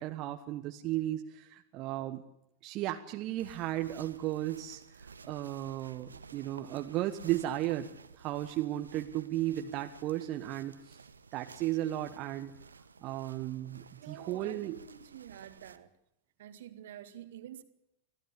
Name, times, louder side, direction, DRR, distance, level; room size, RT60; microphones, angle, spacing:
voice 1, 0.0-2.2 2.6-7.9 8.1-11.0 11.3-12.5 13.0-14.8, right 14 dB, 40° right, 1.3 m, -35 dB
sound 1, 3.4-15.8, right 5 dB, 75° right, 1.2 m, -53 dB
voice 2, 14.0-15.9 16.4-17.6, right 11 dB, 55° right, 1.9 m, -48 dB
25.5 x 16.5 x 8.5 m
figure-of-eight pair, 90°, 0 cm